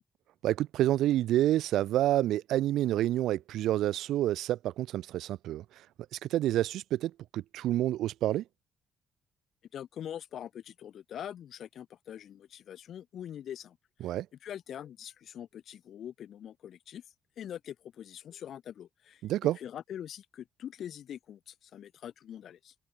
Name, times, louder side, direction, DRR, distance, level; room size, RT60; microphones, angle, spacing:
voice 1, 0.4-5.6 6.1-8.4 14.0-14.3 19.2-19.6, right 13 dB, 85° right, 0.4 m, -28 dB
voice 2, 9.7-13.8 14.0-14.1 14.4-17.0 17.4-19.2 19.6-22.7, left 10 dB, 65° left, 2.0 m, -43 dB
open air
cardioid pair, 90°, 0 cm